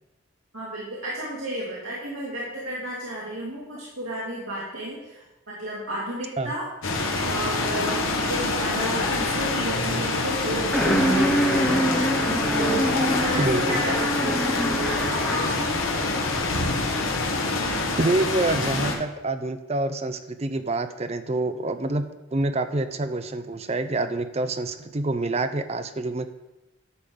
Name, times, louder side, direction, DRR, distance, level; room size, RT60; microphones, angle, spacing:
voice 1, 0.5-6.7 7.2-15.8, right 1 dB, 80° right, -5 dB, 2.2 m, -33 dB
sound 1, 6.8-18.9, left 3 dB, 75° left, 1.3 m, -26 dB
sound 2, 10.7-15.6, equal, 5° left, 1.1 m, -25 dB
voice 2, 13.4-13.8 18.0-26.3, right 2 dB, 30° right, 9 dB, 0.5 m, -27 dB
10.5 x 3.7 x 6.9 m, 0.99 s
head